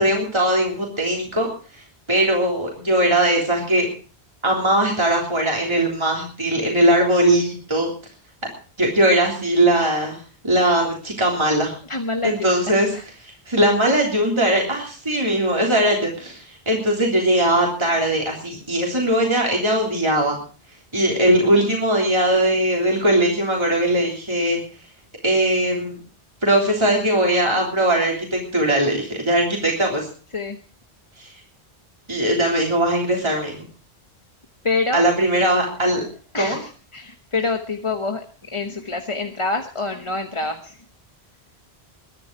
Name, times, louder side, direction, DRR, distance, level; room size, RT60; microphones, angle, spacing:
voice 1, 0.0-1.5 1.7-3.9 4.4-7.9 8.8-11.7 12.2-12.9 13.2-20.4 20.9-24.6 25.2-26.0 26.4-30.1 31.2-31.3 32.1-33.7 34.9-36.0 36.3-36.6, right 1 dB, 25° right, -1 dB, 3.5 m, -20 dB
voice 2, 11.9-13.0 30.3-30.6 34.6-35.1 36.3-40.8, left 3 dB, 30° left, 5 dB, 1.1 m, -26 dB
22.5 x 10.5 x 4.6 m, 0.39 s
omnidirectional pair, 1.1 m